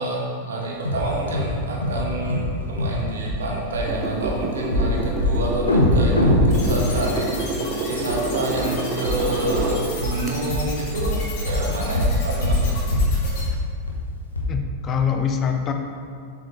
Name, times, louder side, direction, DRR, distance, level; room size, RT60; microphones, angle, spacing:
voice 1, 0.0-11.1 11.4-12.9, right 2 dB, 65° right, -1 dB, 1.1 m, -28 dB
sound 1, 0.8-1.1 1.3-1.6 1.8-2.0 2.3-2.5 2.8-3.0 3.3-3.4 3.7-3.9 4.2-4.3 4.7-4.9 5.2-5.4 5.7-7.7 8.1-8.2 8.6-8.7 9.0-9.2 9.5-9.7 10.0-10.2 10.5-10.7 11.0-11.2 11.5-11.7 11.9-12.2 12.4-12.7 12.9-13.1 13.4-13.5 13.9-14.0 14.4-14.5, left 1 dB, 80° left, 0.8 m, -21 dB
sound 2, 3.9-9.8 10.3-10.4, right 2 dB, 25° right, 0.7 m, -28 dB
sound 3, 6.5-13.4, left 3 dB, 45° left, 1.4 m, -35 dB
voice 2, 14.5-15.7, left 7 dB, 30° left, 4 dB, 0.5 m, -24 dB
7.1 x 4.6 x 3.3 m, 2.2 s
figure-of-eight pair, 90°, 0 cm